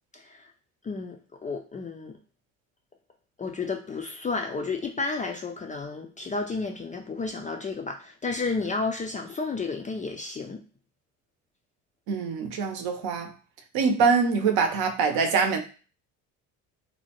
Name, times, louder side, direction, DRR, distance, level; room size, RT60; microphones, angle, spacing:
voice 1, 0.1-0.5 0.8-2.2 3.4-10.6, left 4 dB, 20° left, 0.3 m, -32 dB
voice 2, 12.1-13.3 13.7-15.6, right 5 dB, 60° right, 0.7 m, -24 dB
2.7 x 2.1 x 2.8 m
supercardioid pair, 70°, 40 cm